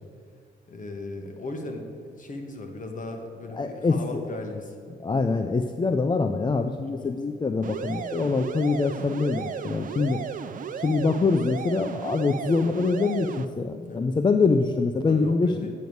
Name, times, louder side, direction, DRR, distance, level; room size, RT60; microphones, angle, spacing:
voice 1, 0.7-4.7 6.8-7.1 13.8-14.1 15.0-15.7, left 2 dB, 40° left, 4 dB, 1.5 m, -37 dB
voice 2, 3.5-4.2 5.0-10.2 10.8-15.5, left 4 dB, 25° left, 8 dB, 0.4 m, -24 dB
sound 1, 7.6-13.5, right 7 dB, 45° right, 0.5 m, -35 dB
9.1 x 5.3 x 7.8 m, 2.1 s
cardioid pair, 90°, 20 cm